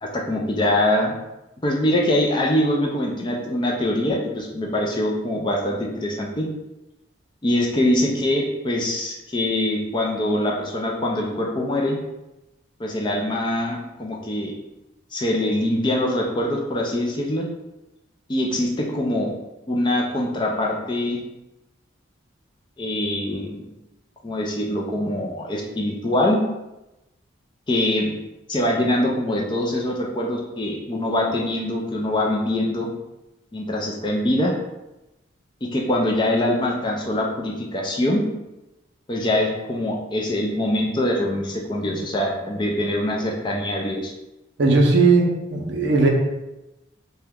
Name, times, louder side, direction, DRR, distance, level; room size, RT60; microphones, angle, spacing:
voice 1, 0.0-1.2 1.6-6.5 7.4-12.0 12.8-14.5 15.1-17.5 18.3-19.3 19.7-21.2 22.8-23.6 24.2-26.4 27.7-28.1 28.5-32.9 33.5-34.5 35.6-38.2 39.1-44.1, left 1 dB, 25° left, -1 dB, 0.4 m, -23 dB
voice 2, 44.6-46.1, right 3 dB, 65° right, 1 dB, 0.5 m, -17 dB
2.8 x 2.2 x 3.5 m, 0.97 s
head